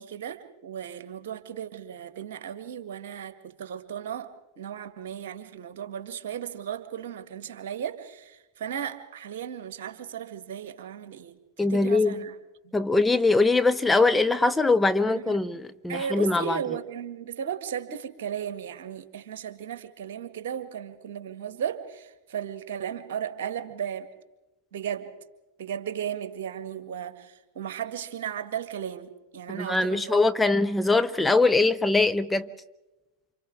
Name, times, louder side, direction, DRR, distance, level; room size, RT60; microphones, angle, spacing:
voice 1, 0.0-4.3 4.6-12.3 12.6-12.7 15.1-15.4 15.9-24.1 24.7-25.1 25.6-30.3 30.5-30.8, right 9 dB, 55° right, 2.0 m, -35 dB
voice 2, 11.6-12.2 12.7-16.6 29.6-32.5, left 3 dB, 5° left, 0.7 m, -22 dB
29.0 x 27.5 x 3.6 m
figure-of-eight pair, 90°, 0 cm